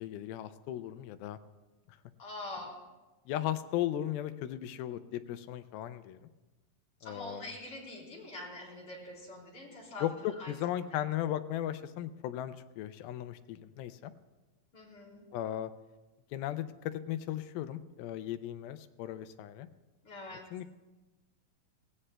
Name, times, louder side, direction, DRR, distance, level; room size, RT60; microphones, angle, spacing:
voice 1, 0.0-1.4 1.9-2.0 3.3-6.3 7.0-7.5 10.0-14.1 15.3-15.7 16.3-19.7 20.5-20.7, left 12 dB, 85° left, 11 dB, 2.4 m, -36 dB
voice 2, 2.2-2.8 7.0-10.6 14.7-15.3 20.0-20.4, left 2 dB, 35° left, -4 dB, 4.3 m, -44 dB
24.0 x 17.5 x 2.2 m, 1.2 s
omnidirectional pair, 4.3 m